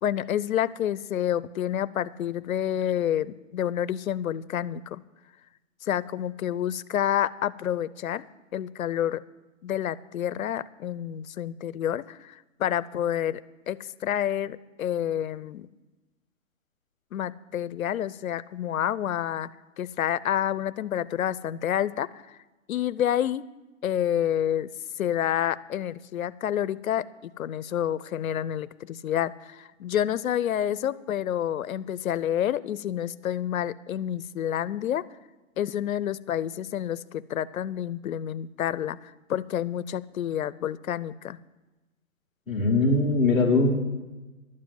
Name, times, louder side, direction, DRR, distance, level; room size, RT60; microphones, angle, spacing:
voice 1, 0.0-5.0 5.8-8.3 8.5-9.2 9.6-13.4 13.7-15.7 17.1-19.5 19.8-22.4 22.7-23.4 23.8-24.7 25.0-35.0 35.6-41.4, left 10 dB, 85° left, 17 dB, 0.6 m, -29 dB
voice 2, 42.5-43.8, left 3 dB, ahead, -8 dB, 1.5 m, -21 dB
12.0 x 7.5 x 7.6 m, 1.1 s
hypercardioid pair, 175°, 40 cm